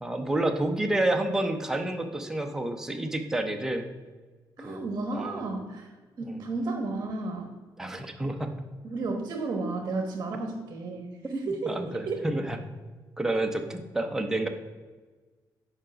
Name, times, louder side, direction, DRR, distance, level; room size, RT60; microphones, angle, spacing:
voice 1, 0.0-3.9 4.6-4.9 5.1-5.4 6.3-6.4 7.8-8.5 11.7-12.6 13.2-14.5, right 1 dB, 5° right, 4 dB, 0.7 m, -29 dB
voice 2, 4.6-5.9 6.2-7.5 8.8-12.3, right 3 dB, 40° right, 3 dB, 1.1 m, -33 dB
7.2 x 5.0 x 6.1 m, 1.3 s
cardioid pair, 155°, 8 cm